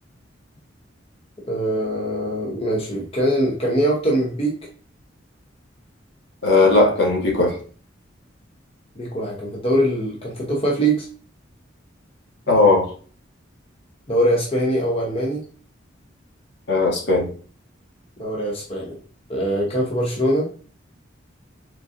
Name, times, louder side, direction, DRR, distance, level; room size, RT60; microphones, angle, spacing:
voice 1, 1.5-4.5 9.0-11.1 14.1-15.4 18.2-19.0 19.3-20.5, right 1 dB, 30° left, 0.8 m, -22 dB
voice 2, 6.4-7.6 12.5-12.9 16.7-17.3, left 2 dB, 60° left, 1.4 m, -17 dB
5.1 x 3.8 x 2.5 m
head